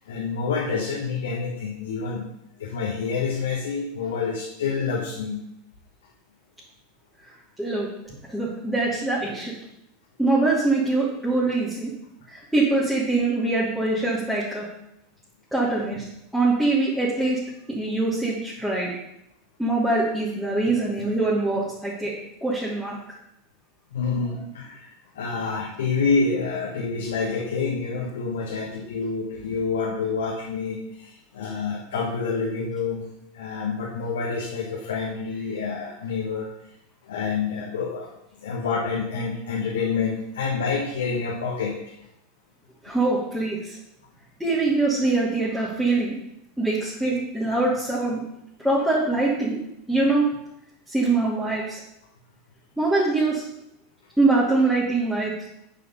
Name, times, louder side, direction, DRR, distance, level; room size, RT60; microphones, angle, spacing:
voice 1, 0.1-2.3 2.6-5.4 23.9-33.0 33.3-36.5 37.0-38.1 38.4-41.9, left 5 dB, 65° left, -1 dB, 1.3 m, -27 dB
voice 2, 8.3-9.5 10.2-11.9 12.3-14.7 15.5-16.0 16.3-17.4 17.7-18.9 19.6-22.1 22.4-23.0 42.8-43.8 44.4-46.1 46.6-48.2 48.6-49.6 49.9-50.3 50.9-51.8 52.8-53.4 54.2-55.3, right 2 dB, ahead, -10 dB, 2.7 m, -23 dB
8.7 x 5.9 x 5.5 m, 0.83 s
figure-of-eight pair, 80°, 0 cm